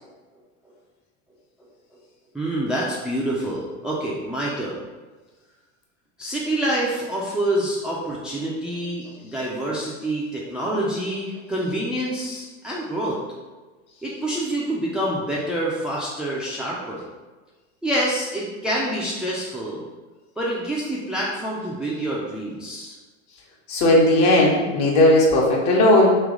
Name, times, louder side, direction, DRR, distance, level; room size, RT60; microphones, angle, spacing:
voice 1, 2.3-4.8 6.2-13.2 14.0-17.0 17.8-19.8 20.4-22.9, right 1 dB, ahead, -5 dB, 0.6 m, -27 dB
voice 2, 23.7-26.1, left 1 dB, 50° left, -2 dB, 1.2 m, -16 dB
3.2 x 3.0 x 3.8 m, 1.3 s
hypercardioid pair, 95°, 38 cm